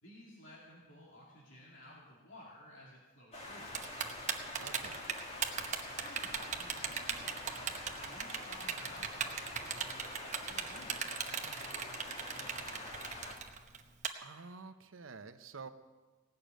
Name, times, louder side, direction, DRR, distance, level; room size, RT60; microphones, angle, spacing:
voice 1, 0.0-4.0 5.7-12.9, left 1 dB, 70° left, -5 dB, 2.5 m, -56 dB
sound 1, 3.3-13.4, left 1 dB, 35° left, 2.2 m, -46 dB
Typing, 3.7-14.1, right 7 dB, 35° right, 0.9 m, -37 dB
voice 2, 4.6-5.1 14.2-15.7, right 4 dB, 90° right, 10 dB, 0.8 m, -49 dB
17.5 x 6.7 x 9.0 m, 1.3 s
head